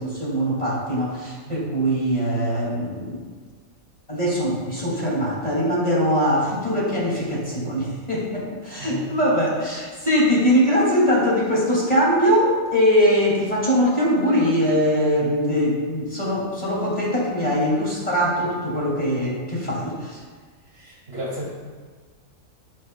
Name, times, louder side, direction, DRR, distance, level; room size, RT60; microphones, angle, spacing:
voice 1, 0.0-3.2 4.1-20.2, equal, 25° left, -5 dB, 2.4 m, -22 dB
voice 2, 8.8-9.2 20.7-21.5, equal, 45° right, -4 dB, 2.4 m, -33 dB
17.0 x 6.3 x 2.2 m, 1.5 s
omnidirectional pair, 1.4 m